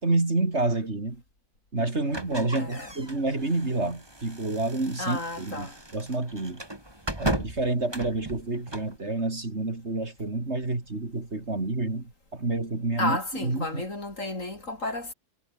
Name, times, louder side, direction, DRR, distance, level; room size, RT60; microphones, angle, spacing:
voice 1, 0.0-1.2 1.7-6.6 7.2-13.8, right 2 dB, 45° right, 3.9 m, -29 dB
sound 1, 2.1-9.0, right 1 dB, 15° right, 3.2 m, -36 dB
voice 2, 2.6-2.9 5.0-5.8 13.0-15.1, left 2 dB, 55° left, 5.5 m, -32 dB
omnidirectional pair, 1.6 m